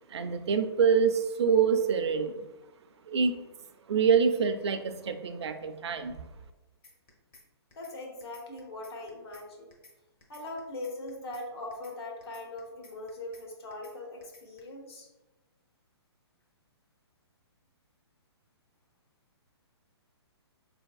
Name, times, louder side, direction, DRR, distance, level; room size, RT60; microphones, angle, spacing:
voice 1, 0.1-2.5 3.1-3.4 3.9-6.2, right 6 dB, 75° right, 8 dB, 0.5 m, -26 dB
sound 1, 6.8-7.4 7.7-7.9 8.2-9.4 9.7-9.9 10.2-11.4 11.7-11.9 12.2-13.4 13.7-13.9 14.2-14.6, left 3 dB, 20° left, 0.7 m, -55 dB
voice 2, 7.7-9.7 10.3-15.1, left 2 dB, 65° left, 0 dB, 1.2 m, -41 dB
4.0 x 3.4 x 2.3 m, 1.1 s
hypercardioid pair, 155°, 14 cm